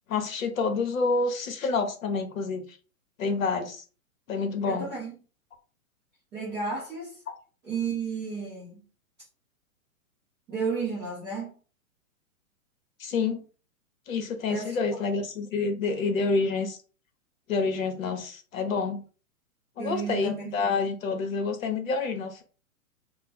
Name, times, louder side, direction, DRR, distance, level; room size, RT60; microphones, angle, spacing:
voice 1, 0.1-2.7 3.2-3.8 4.3-4.9 13.0-13.4 14.1-16.8 17.5-19.0 19.8-22.4, left 4 dB, 65° left, 0.9 m, -28 dB
voice 2, 4.6-5.1 6.3-7.2 7.6-8.8 10.5-11.5 14.5-15.1 19.8-20.7, right 5 dB, 5° right, 0.3 m, -33 dB
2.5 x 2.1 x 3.4 m
hypercardioid pair, 115°, 43 cm